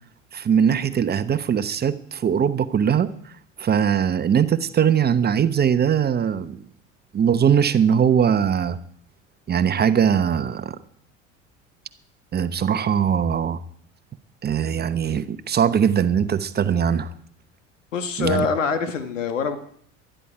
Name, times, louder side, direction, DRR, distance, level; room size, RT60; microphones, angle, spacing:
voice 1, 0.3-3.1 3.6-6.6 7.1-8.8 9.5-10.8 12.3-13.6 14.4-17.1 18.2-18.5, right 8 dB, 25° right, 1.0 m, -21 dB
voice 2, 17.9-19.6, left 5 dB, 75° left, 1.9 m, -24 dB
19.5 x 12.5 x 4.8 m
figure-of-eight pair, 70°, 38 cm